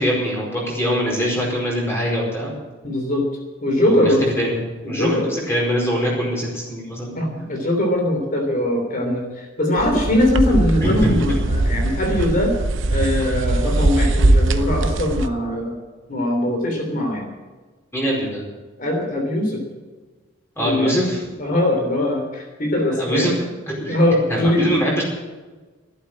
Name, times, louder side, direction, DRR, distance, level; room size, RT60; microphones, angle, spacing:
voice 1, 0.0-2.5 3.8-4.0 4.3-4.6 4.8-7.2 10.8-11.1 17.9-18.4 20.6-21.2 22.9-24.0 24.3-25.0, equal, 10° left, -3 dB, 4.8 m, -23 dB
voice 2, 2.8-3.3 3.6-4.2 4.8-5.3 7.1-12.5 12.9-15.8 16.1-17.3 18.8-19.6 20.6-20.9 21.4-23.3 23.9-24.7, left 1 dB, 40° left, 2 dB, 3.3 m, -21 dB
sound 1, 9.8-15.3, right 2 dB, 65° right, 0.8 m, -20 dB
12.5 x 11.5 x 7.4 m, 1.3 s
head